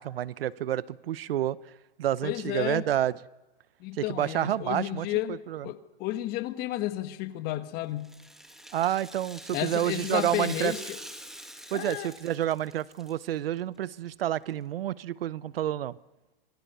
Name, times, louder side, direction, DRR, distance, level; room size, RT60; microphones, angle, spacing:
voice 1, 0.0-1.6 2.0-3.1 3.9-5.7 8.7-10.7 11.7-16.0, right 12 dB, 75° right, 0.8 m, -29 dB
voice 2, 2.2-2.8 3.8-8.1 9.5-11.0 11.7-12.1, left 15 dB, 35° left, 1.4 m, -32 dB
Rattle (instrument), 8.0-13.3 13.6-13.7 14.5-14.6, equal, ahead, 1.8 m, -44 dB
26.5 x 22.5 x 6.8 m
hypercardioid pair, 135°, 29 cm